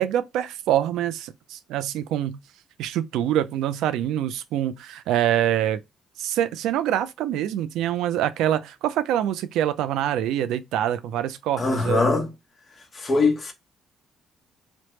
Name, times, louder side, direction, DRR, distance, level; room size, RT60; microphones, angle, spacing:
voice 1, 0.0-2.4 2.8-5.8 6.2-12.1, right 11 dB, 85° right, 0.3 m, -25 dB
voice 2, 11.6-12.3 12.8-13.5, left 3 dB, 30° left, 0.9 m, -22 dB
3.2 x 2.0 x 2.9 m
cardioid pair, 100°, 0 cm